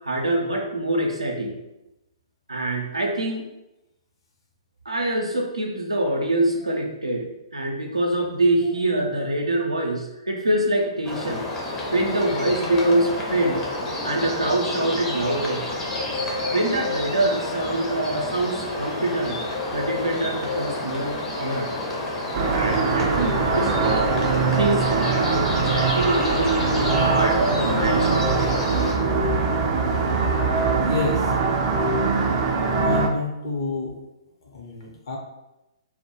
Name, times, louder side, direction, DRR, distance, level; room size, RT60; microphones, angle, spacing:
voice 1, 0.0-1.6 2.5-3.4 4.9-7.3 7.5-11.5 11.9-13.7 14.0-15.7 16.5-19.4 19.7-21.7 22.5-24.1 24.5-28.4, right 1 dB, 90° right, 1 dB, 0.5 m, -25 dB
sound 1, 11.0-28.9, left 2 dB, 20° left, 0.5 m, -29 dB
sound 2, 22.3-33.1, right 4 dB, 35° right, 0.3 m, -22 dB
voice 2, 30.8-31.3 32.8-33.9 34.5-35.2, left 4 dB, 55° left, -1 dB, 0.7 m, -28 dB
2.1 x 2.1 x 2.9 m, 0.94 s
figure-of-eight pair, 120°, 3 cm